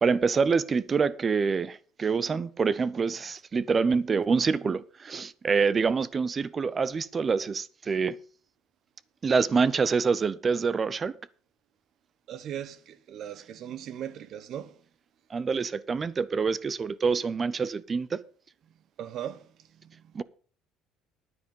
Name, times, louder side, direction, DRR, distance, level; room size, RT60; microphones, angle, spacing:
voice 1, 0.0-8.2 9.2-11.2 15.3-18.2 20.1-20.2, right 5 dB, 25° right, 0.6 m, -26 dB
voice 2, 12.3-14.8 19.0-20.2, right 10 dB, 55° right, 1.0 m, -39 dB
9.8 x 9.7 x 5.4 m
cardioid pair, 120°, 0 cm